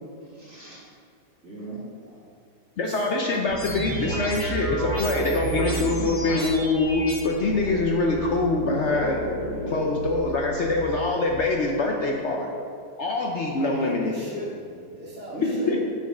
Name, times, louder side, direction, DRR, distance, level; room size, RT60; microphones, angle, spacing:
voice 1, 0.2-0.8 1.4-2.2 8.9-10.0 12.1-12.3 15.3-15.8, right 1 dB, 40° right, -10 dB, 2.2 m, -35 dB
voice 2, 2.8-9.2 9.7-12.5 13.0-14.1 15.7-15.8, left 3 dB, 75° left, 0 dB, 0.6 m, -24 dB
sound 1, 3.5-11.3, right 5 dB, 75° right, 1.5 m, -36 dB
sound 2, 3.6-7.2, left 1 dB, 45° left, 2.6 m, -32 dB
voice 3, 13.6-15.7, equal, 5° right, -9 dB, 1.6 m, -38 dB
7.2 x 6.1 x 5.5 m, 2.2 s
omnidirectional pair, 2.1 m